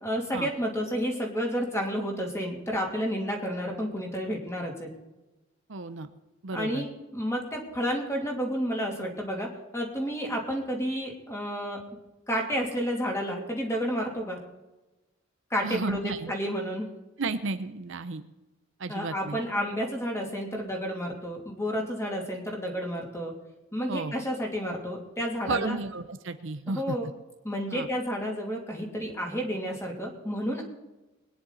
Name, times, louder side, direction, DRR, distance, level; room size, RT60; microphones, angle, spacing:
voice 1, 0.0-4.9 6.5-11.8 12.3-14.4 15.5-16.9 18.9-23.3 23.7-25.8 26.7-27.1 27.4-30.6, equal, 15° left, 0 dB, 2.8 m, -31 dB
voice 2, 5.7-6.1 6.4-6.9 15.6-16.3 17.2-18.2 18.8-19.4 22.0-22.2 23.9-24.1 25.5-27.0 27.7-27.9, right 3 dB, 65° right, 10 dB, 0.8 m, -33 dB
22.0 x 10.0 x 4.1 m, 1.1 s
head